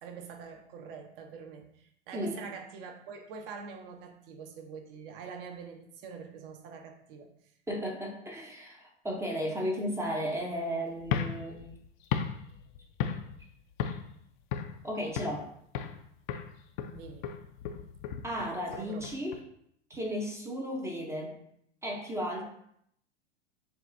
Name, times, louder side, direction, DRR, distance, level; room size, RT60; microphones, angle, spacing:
voice 1, 0.0-7.3 16.9-17.3 18.7-19.1 19.9-20.0, right 5 dB, 50° right, 4 dB, 0.8 m, -45 dB
voice 2, 7.7-11.7 14.8-15.5 18.2-19.4 19.9-21.4 21.8-22.5, equal, 10° right, 0 dB, 0.5 m, -34 dB
sound 1, 11.0-13.5 13.8-14.1 14.5-15.4 15.7-16.0 16.3-19.4, left 8 dB, 45° left, 0.4 m, -35 dB
6.9 x 2.3 x 2.5 m, 0.70 s
hypercardioid pair, 110°, 35 cm